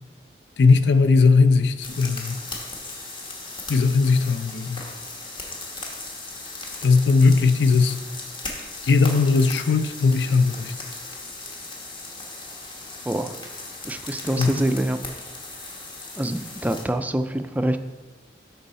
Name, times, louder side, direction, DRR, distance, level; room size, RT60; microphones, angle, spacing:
voice 1, 0.6-2.4 3.7-4.8 6.8-8.0 8.8-10.7 14.4-14.5, left 4 dB, 75° left, 11 dB, 0.4 m, -18 dB
sound 1, 1.8-16.8, left 2 dB, 30° left, 1.1 m, -37 dB
voice 2, 13.8-15.0 16.2-17.8, right 1 dB, 10° right, 8 dB, 0.3 m, -25 dB
11.0 x 3.9 x 4.1 m, 1.3 s
head